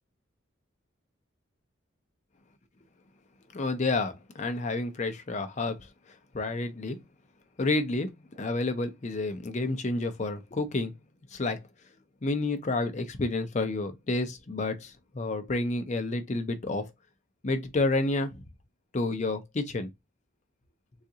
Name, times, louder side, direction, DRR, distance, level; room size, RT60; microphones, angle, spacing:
voice 1, 3.5-5.9 6.3-7.0 7.6-10.9 11.3-11.6 12.2-16.9 17.4-18.4 18.9-19.9, left 2 dB, 35° left, 0.5 m, -30 dB
3.7 x 2.4 x 2.7 m
head